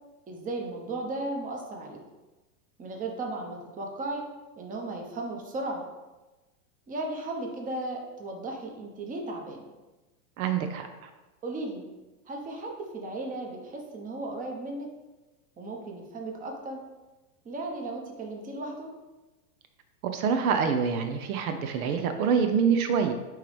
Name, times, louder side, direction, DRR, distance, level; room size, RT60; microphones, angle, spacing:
voice 1, 0.3-2.0 2.8-4.3 4.6-5.8 6.9-9.7 11.4-11.9 12.3-14.9 15.6-16.8 17.4-18.9, right 2 dB, 15° right, 1 dB, 0.9 m, -35 dB
voice 2, 10.4-11.1 20.1-23.1, right 6 dB, 65° right, 7 dB, 0.8 m, -26 dB
9.2 x 3.1 x 3.3 m, 1.1 s
hypercardioid pair, 120°, 47 cm